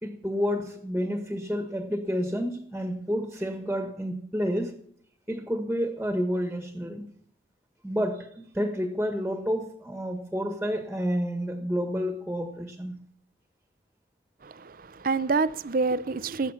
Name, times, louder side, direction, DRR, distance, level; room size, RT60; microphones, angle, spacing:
voice 1, 0.0-4.8 5.3-7.1 7.8-13.0, equal, 5° right, 1.4 m, -30 dB
voice 2, 14.4-16.5, right 4 dB, 50° right, 0.6 m, -27 dB
19.0 x 8.2 x 5.8 m
head